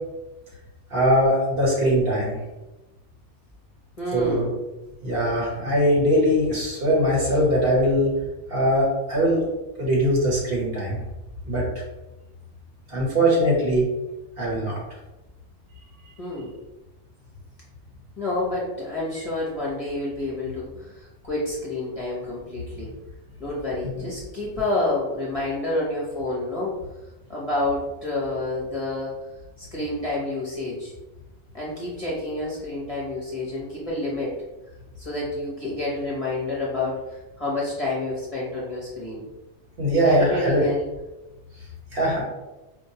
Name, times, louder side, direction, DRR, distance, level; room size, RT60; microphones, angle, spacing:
voice 1, 0.9-2.3 4.1-4.5 5.0-8.1 8.5-9.4 9.8-11.0 11.5-11.6 12.9-13.8 14.4-14.8 39.8-40.6 41.9-42.2, equal, 55° right, -4 dB, 1.2 m, -21 dB
voice 2, 4.0-4.5 16.2-16.5 18.2-22.9 23.4-26.8 27.3-29.1 29.6-30.9 31.5-34.4 35.0-39.3 40.0-40.8, left 2 dB, 35° left, -6 dB, 0.8 m, -29 dB
4.5 x 2.2 x 2.8 m, 1.0 s
omnidirectional pair, 1.2 m